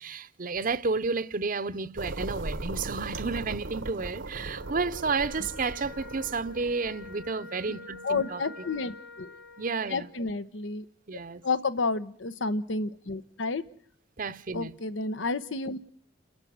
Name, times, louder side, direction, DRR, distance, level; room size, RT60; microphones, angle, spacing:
voice 1, 0.0-8.4 9.6-10.1 11.1-11.4 14.2-14.7, right 4 dB, 45° right, 0.8 m, -31 dB
sound 1, 2.0-7.2, right 2 dB, 75° right, 1.1 m, -38 dB
Wind instrument woodwind instrument, 4.5-10.1, left 2 dB, 60° left, 1.7 m, -46 dB
voice 2, 8.0-9.3 9.9-10.9 11.4-13.6 14.5-15.8, left 3 dB, 80° left, 1.0 m, -30 dB
30.0 x 10.5 x 9.4 m
head